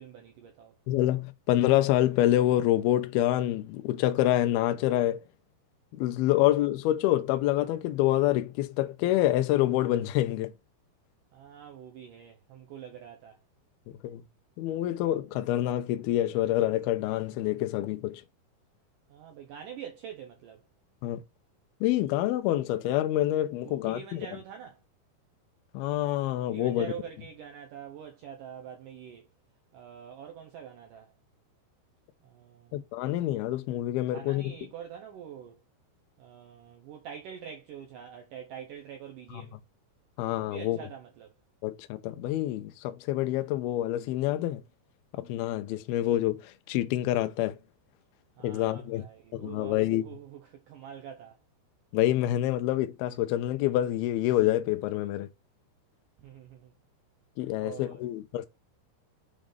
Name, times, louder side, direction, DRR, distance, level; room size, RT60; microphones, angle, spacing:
voice 1, 0.0-0.8 11.3-13.4 19.1-20.6 23.7-24.8 26.4-29.3 29.7-31.1 32.2-32.8 34.1-35.6 36.2-39.6 40.4-41.3 48.4-51.4 56.2-56.7 57.6-58.0, right 8 dB, 85° right, 1.8 m, -45 dB
voice 2, 0.9-5.2 5.9-10.5 14.0-14.2 14.6-18.2 21.0-21.2 21.8-24.2 25.7-26.9 32.7-34.5 40.2-40.8 41.6-44.6 45.1-47.6 48.4-49.1 49.3-50.0 51.9-55.3 57.4-58.5, left 14 dB, 80° left, 2.4 m, -27 dB
7.3 x 3.8 x 5.0 m
omnidirectional pair, 4.9 m